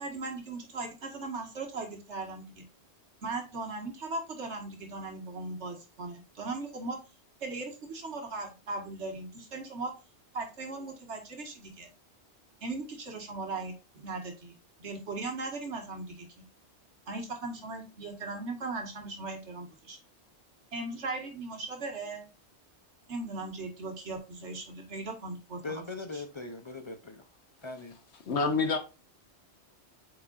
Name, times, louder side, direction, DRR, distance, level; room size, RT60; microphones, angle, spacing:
voice 1, 0.0-2.7 3.2-7.0 7.4-9.9 10.3-11.9 12.6-16.5 17.1-20.0 20.7-22.3 23.1-25.8 26.1-26.2, right 3 dB, 90° right, 2.0 m, -38 dB
voice 2, 25.6-27.3 27.6-28.0, left 3 dB, 35° left, 0.6 m, -40 dB
voice 3, 28.3-28.8, left 4 dB, 80° left, 1.4 m, -26 dB
8.4 x 4.8 x 2.5 m
omnidirectional pair, 1.1 m